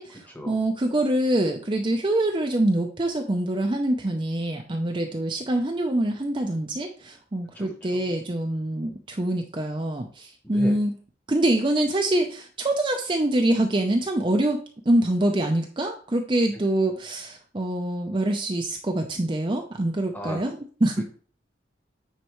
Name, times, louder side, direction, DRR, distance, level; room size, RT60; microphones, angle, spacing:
voice 1, 0.0-10.9 11.3-14.6 14.9-21.0, right 1 dB, 25° right, 3 dB, 0.5 m, -25 dB
voice 2, 7.5-8.1 10.4-10.8 16.5-16.6 20.1-20.4, equal, 10° left, 3 dB, 1.1 m, -36 dB
9.2 x 4.4 x 3.1 m, 0.42 s
head